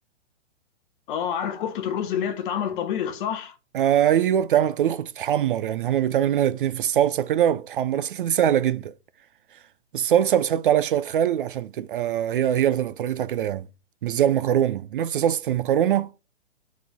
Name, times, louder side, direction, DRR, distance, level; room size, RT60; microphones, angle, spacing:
voice 1, 1.1-3.5, left 8 dB, 45° left, 1.5 m, -28 dB
voice 2, 3.7-8.9 9.9-13.7 14.0-16.1, right 10 dB, 50° right, 0.4 m, -22 dB
9.3 x 4.1 x 4.5 m
hypercardioid pair, 135°, 35 cm